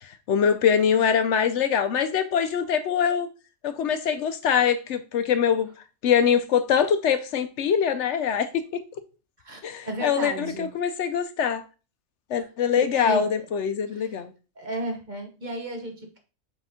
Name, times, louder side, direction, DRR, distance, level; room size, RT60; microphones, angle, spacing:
voice 1, 0.0-3.3 3.6-5.7 6.0-8.8 9.6-11.6 12.3-14.3, left 7 dB, 70° left, 0.9 m, -23 dB
voice 2, 9.4-10.7 12.8-13.5 13.9-14.2 14.5-16.2, right 1 dB, 40° right, 1.2 m, -34 dB
7.3 x 4.2 x 3.6 m
omnidirectional pair, 1.3 m